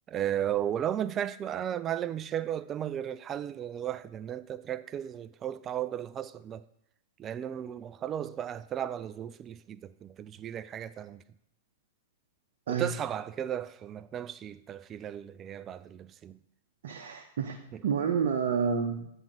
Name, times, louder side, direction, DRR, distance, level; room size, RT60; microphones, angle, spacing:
voice 1, 0.1-6.6 7.2-11.2 12.7-16.4 17.7-17.8, right 10 dB, 25° right, 0.3 m, -35 dB
voice 2, 16.8-19.1, right 6 dB, 55° right, 0.8 m, -29 dB
8.8 x 3.6 x 5.9 m
figure-of-eight pair, 100°, 0 cm